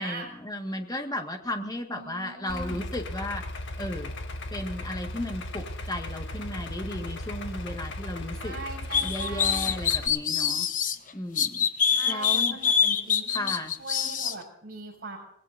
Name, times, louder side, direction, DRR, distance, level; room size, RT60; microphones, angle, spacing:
voice 1, 0.0-3.4 3.8-4.1 4.5-8.5 8.9-10.7 11.1-11.7 12.1-12.6 13.3-13.7, left 1 dB, 20° left, 4 dB, 1.8 m, -34 dB
voice 2, 1.9-2.8 8.3-9.8 11.9-13.5 13.8-15.2, right 3 dB, 45° right, -3 dB, 6.9 m, -40 dB
Idling, 2.5-10.1, left 1 dB, 60° left, 1.8 m, -36 dB
sound 1, 8.9-11.0 11.4-14.3, left 7 dB, 40° left, 1.0 m, -25 dB
29.0 x 18.5 x 2.7 m, 0.76 s
head